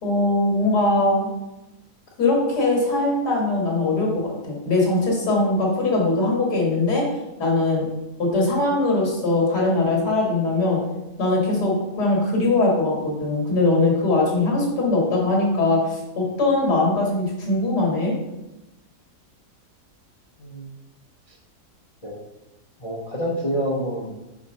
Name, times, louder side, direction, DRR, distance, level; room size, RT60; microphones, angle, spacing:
voice 1, 0.0-1.3 2.2-7.0 7.4-7.9 8.2-10.8 11.2-18.1, left 2 dB, 80° left, -2 dB, 2.4 m, -21 dB
voice 2, 20.4-20.8 21.3-21.4 22.0-22.2 22.8-24.2, equal, 40° left, -3 dB, 0.5 m, -28 dB
4.7 x 4.4 x 5.4 m, 0.99 s
omnidirectional pair, 1.7 m